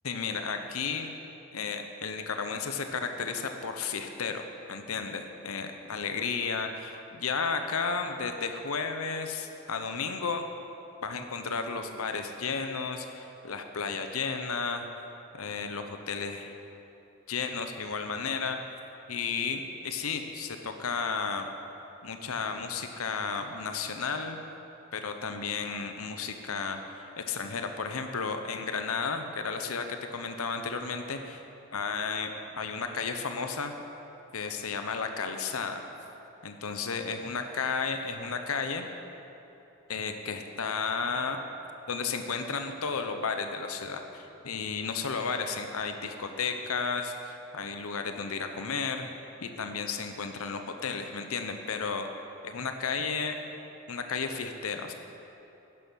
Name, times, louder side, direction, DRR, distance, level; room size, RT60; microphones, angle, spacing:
voice 1, 0.0-1.1 1.5-10.4 11.0-14.9 15.3-16.5 17.3-18.6 19.1-21.5 22.0-24.4 24.9-31.4 31.7-33.7 34.3-35.8 36.4-38.8 39.9-41.4 41.9-49.1 49.4-52.1 52.4-53.4 53.9-54.9, left 5 dB, 75° left, 6 dB, 0.8 m, -33 dB
11.0 x 10.5 x 6.3 m, 3.0 s
head